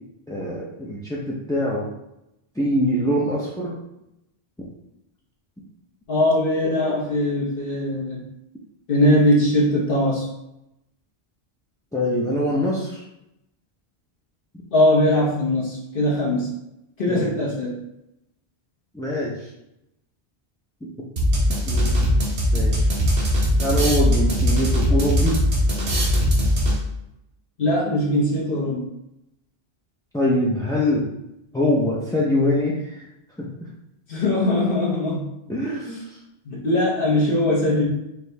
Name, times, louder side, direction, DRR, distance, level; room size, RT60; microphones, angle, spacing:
voice 1, 0.3-1.9 2.6-3.7 11.9-13.0 17.1-17.3 18.9-19.5 20.8-20.9 21.6-22.1 22.5-22.9 23.6-25.4 30.1-31.1 31.5-33.0 33.4-33.5 35.5-36.2, left 1 dB, 5° left, -6 dB, 0.4 m, -23 dB
voice 2, 6.1-8.2 8.9-10.3 14.7-16.5 17.0-17.8 27.6-28.8 34.1-35.3 36.5-37.8, left 1 dB, 60° left, -4 dB, 1.1 m, -20 dB
sound 1, 21.2-27.0, equal, 85° right, 1.3 m, -20 dB
4.8 x 2.7 x 3.3 m, 0.86 s
omnidirectional pair, 1.1 m